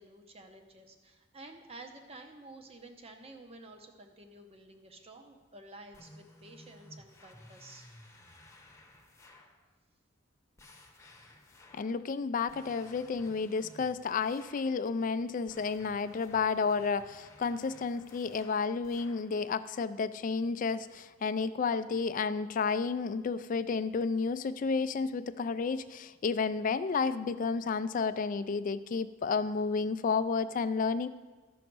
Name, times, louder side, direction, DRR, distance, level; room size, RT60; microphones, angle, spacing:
voice 1, 0.0-7.9, right 2 dB, 30° right, 4 dB, 0.8 m, -51 dB
sound 1, 5.9-9.6 10.6-12.0 12.5-14.8 15.5-19.3, left 1 dB, 15° left, 0.9 m, -56 dB
voice 2, 11.7-31.1, left 5 dB, 40° left, 13 dB, 0.3 m, -31 dB
12.5 x 6.3 x 4.6 m, 1.3 s
head